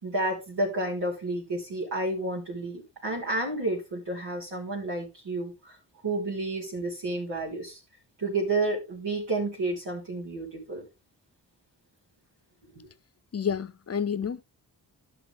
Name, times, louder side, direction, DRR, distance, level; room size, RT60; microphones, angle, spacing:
voice 1, 0.0-5.8 6.0-7.8 8.2-10.8, right 2 dB, 85° right, 3.8 m, -30 dB
voice 2, 13.3-14.4, left 7 dB, 35° left, 0.6 m, -29 dB
12.0 x 6.1 x 3.5 m
cardioid pair, 55°, 42 cm